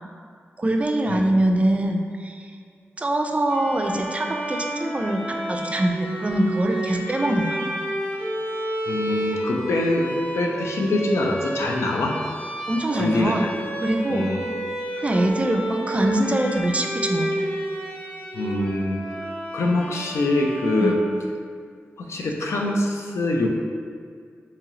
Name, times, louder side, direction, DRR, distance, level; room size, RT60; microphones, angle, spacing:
voice 1, 0.6-2.5 3.0-7.6 12.7-13.5 13.8-14.3 15.0-17.3 20.8-21.0, right 1 dB, 30° right, 3 dB, 0.3 m, -23 dB
Bowed string instrument, 3.5-21.3, right 1 dB, 20° left, 0.7 m, -31 dB
voice 2, 8.9-12.2 12.9-13.5 14.1-14.4 18.3-19.0 19.5-21.0 22.0-23.5, left 2 dB, 80° left, 0 dB, 0.4 m, -24 dB
3.0 x 2.8 x 3.7 m, 2.1 s
wide cardioid pair, 80°, 5 cm